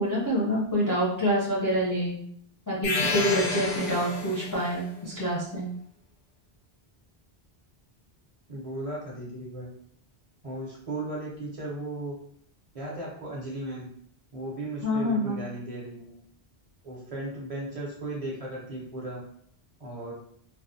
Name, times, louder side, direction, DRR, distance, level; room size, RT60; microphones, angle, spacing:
voice 1, 0.0-2.2 2.7-5.7 14.8-15.4, equal, 25° left, -7 dB, 0.4 m, -27 dB
sound 1, 2.8-4.7, left 3 dB, 90° left, 1.0 m, -29 dB
voice 2, 8.5-9.7 10.4-12.1 12.7-13.9 14.3-16.2 16.8-19.2 19.8-20.1, right 1 dB, 40° right, -5 dB, 0.7 m, -36 dB
2.4 x 2.2 x 2.5 m, 0.66 s
omnidirectional pair, 1.1 m